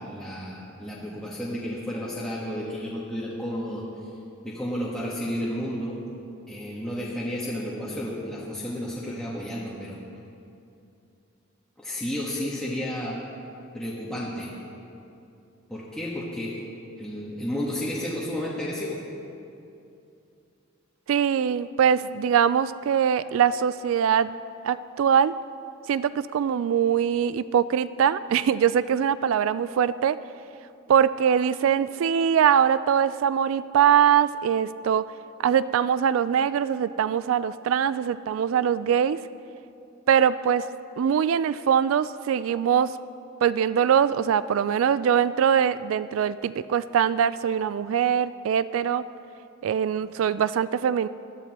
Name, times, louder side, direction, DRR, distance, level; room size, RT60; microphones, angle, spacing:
voice 1, 0.0-3.8 4.4-6.0 6.5-10.0 11.8-13.1 13.7-14.5 15.7-16.6 17.0-19.0, equal, 5° left, -7 dB, 1.4 m, -32 dB
voice 2, 21.1-24.4 24.6-25.3 25.9-30.2 30.9-35.0 35.4-39.2 40.1-40.7 41.0-42.9 43.4-49.0 49.6-51.1, right 8 dB, 80° right, 15 dB, 0.3 m, -22 dB
20.5 x 13.0 x 3.0 m, 2.7 s
head